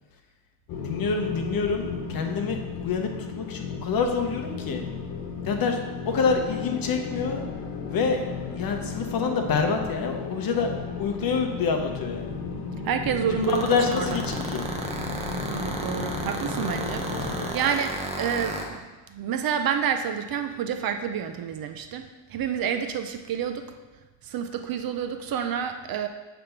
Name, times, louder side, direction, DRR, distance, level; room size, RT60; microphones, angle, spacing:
sound 1, 0.7-17.5, left 5 dB, 80° left, 1.2 m, -34 dB
voice 1, 0.8-4.8 5.4-5.8 6.1-7.4 7.9-12.4 13.3-14.7, left 5 dB, 45° left, 4 dB, 0.9 m, -27 dB
voice 2, 12.8-14.1 15.5-18.8 19.1-23.7 24.2-26.1, right 8 dB, 50° right, 7 dB, 0.5 m, -29 dB
sound 2, 13.4-18.6, right 2 dB, 15° right, 0.7 m, -32 dB
7.2 x 3.4 x 5.8 m, 1.2 s
cardioid pair, 135°, 48 cm